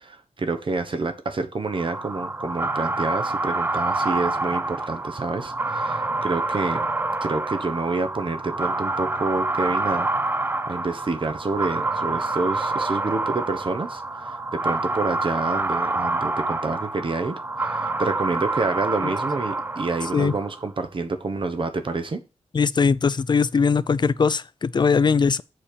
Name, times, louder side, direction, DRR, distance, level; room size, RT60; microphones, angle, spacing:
voice 1, 0.0-6.9 7.2-10.1 10.7-22.2, right 3 dB, 50° right, 1.1 m, -28 dB
sound 1, 1.7-20.6, right 2 dB, 20° right, 0.5 m, -27 dB
voice 2, 22.5-25.4, left 5 dB, 40° left, 0.4 m, -20 dB
7.7 x 4.2 x 6.9 m
wide cardioid pair, 120°, 11 cm